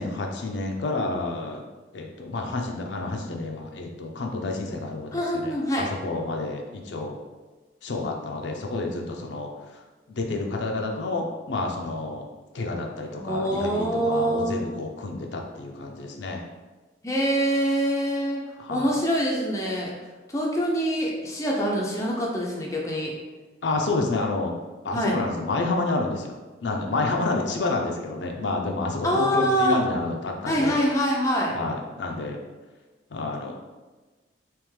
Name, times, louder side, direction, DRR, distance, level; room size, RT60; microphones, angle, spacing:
voice 1, 0.0-1.6 1.9-7.2 7.8-9.8 10.1-12.3 12.5-16.4 18.6-18.9 23.6-24.5 24.8-30.7 31.5-32.4 33.1-33.5, left 2 dB, 75° left, 1 dB, 0.5 m, -29 dB
voice 2, 5.1-5.9 13.2-14.6 17.0-18.4 18.7-19.9 20.3-23.1 24.9-25.1 29.0-29.8 30.5-31.6, equal, 15° left, -3 dB, 0.5 m, -25 dB
3.5 x 3.0 x 3.2 m, 1.2 s
head